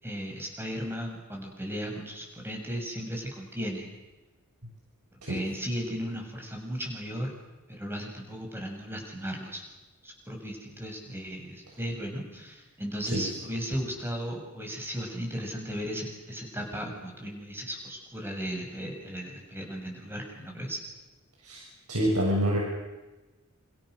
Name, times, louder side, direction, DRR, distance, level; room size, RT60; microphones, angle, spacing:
voice 1, 0.0-3.9 5.3-7.3 7.7-9.6 10.0-20.8, equal, 10° right, 1 dB, 7.1 m, -36 dB
voice 2, 21.9-22.6, equal, 85° right, -2 dB, 7.0 m, -26 dB
29.5 x 28.5 x 6.7 m, 1.1 s
head